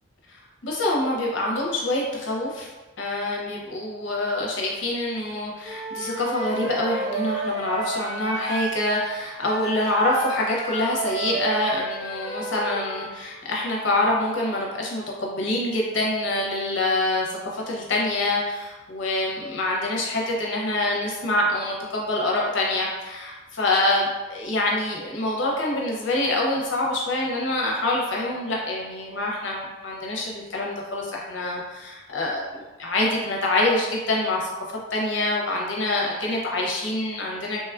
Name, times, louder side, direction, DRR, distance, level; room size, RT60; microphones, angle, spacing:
voice 1, 0.6-2.7 3.0-34.5 34.9-37.6, left 1 dB, 60° left, -2 dB, 0.6 m, -26 dB
Wind instrument woodwind instrument, 5.6-13.1, right 3 dB, 5° right, 0.8 m, -32 dB
3.0 x 2.3 x 2.3 m, 1.1 s
head